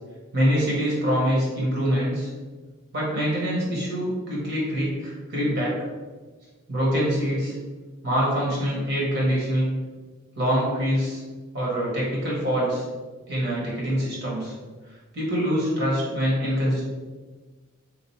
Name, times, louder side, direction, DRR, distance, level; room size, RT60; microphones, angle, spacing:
voice 1, 0.3-2.3 2.9-5.7 6.7-7.5 8.0-9.7 10.3-11.2 11.5-12.8 13.3-14.5 15.1-16.8, equal, 50° right, -6 dB, 1.4 m, -24 dB
3.1 x 2.5 x 4.2 m, 1.3 s
head